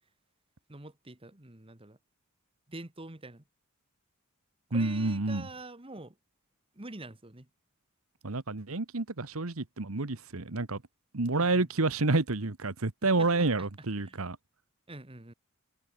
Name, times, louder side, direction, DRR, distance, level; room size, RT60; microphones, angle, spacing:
voice 1, 0.7-2.0 2.7-3.4 4.7-6.1 6.7-7.5 11.3-11.7 13.2-13.5 14.0-14.2 14.9-15.3, right 2 dB, 25° right, 1.7 m, -46 dB
voice 2, 4.7-5.5 8.2-10.8 11.1-14.4, right 3 dB, 75° right, 1.4 m, -29 dB
head